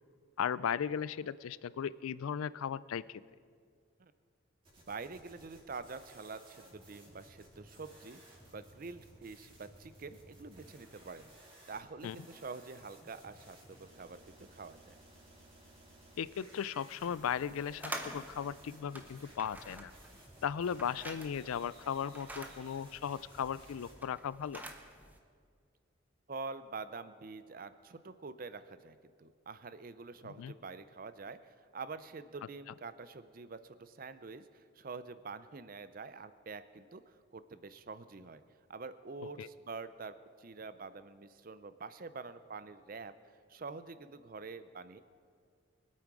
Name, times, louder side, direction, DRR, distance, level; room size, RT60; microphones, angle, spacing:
voice 1, 0.4-3.2 12.0-12.2 16.2-19.9 20.4-24.6 30.2-30.5 39.4-39.5, left 8 dB, 90° left, 19 dB, 0.4 m, -37 dB
sound 1, 4.6-23.9, right 1 dB, 25° right, 3.2 m, -58 dB
voice 2, 4.9-8.2 8.5-11.3 11.7-14.2 14.5-15.0 26.3-31.4 31.7-38.4 38.7-43.1 43.5-45.0, right 4 dB, 45° right, 13 dB, 0.5 m, -46 dB
sound 2, 17.0-25.2, right 1 dB, 10° right, 0.8 m, -48 dB
23.0 x 8.6 x 4.8 m, 2.1 s
head